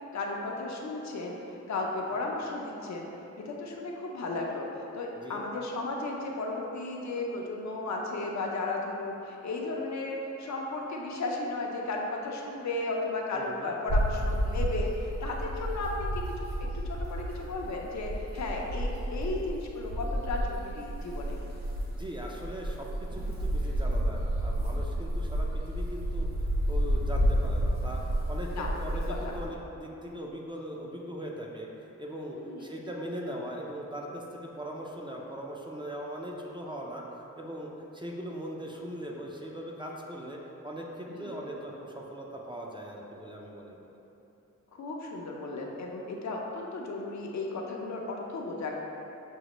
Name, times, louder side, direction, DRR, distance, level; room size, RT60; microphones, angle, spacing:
voice 1, 0.1-1.4 1.7-3.1 3.3-16.1 16.9-21.4 28.5-28.7 29.1-29.3 32.3-32.7 41.1-41.3 44.7-48.7, left 2 dB, 65° left, -1 dB, 0.6 m, -34 dB
voice 2, 13.3-13.8 21.9-31.7 32.0-37.0 37.4-43.8, equal, 15° right, -2 dB, 0.4 m, -40 dB
sound 1, 13.9-29.5, equal, 55° right, 1.5 m, -31 dB
6.1 x 2.1 x 3.0 m, 3.0 s
cardioid pair, 60°, 30 cm